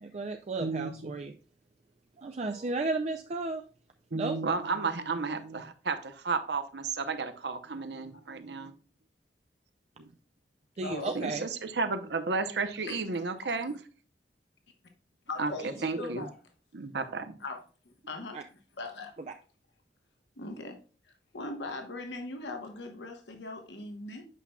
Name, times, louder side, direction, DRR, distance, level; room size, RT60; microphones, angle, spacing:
voice 1, 0.0-1.3 2.2-3.6 4.1-4.4 10.8-11.5 15.6-16.2 18.3-18.4, right 3 dB, 40° right, 0.4 m, -34 dB
voice 2, 0.6-1.1 4.1-8.7 10.0-10.1 11.1-13.7 15.4-15.5 15.8-16.3 16.7-17.3, right 4 dB, 70° right, 0.8 m, -33 dB
voice 3, 10.8-11.2 12.9-13.0 15.3-16.3 17.4-17.6 18.1-18.4 18.8-19.2 20.4-20.8 21.3-24.2, left 2 dB, 80° left, 1.1 m, -39 dB
8.2 x 5.6 x 2.3 m
head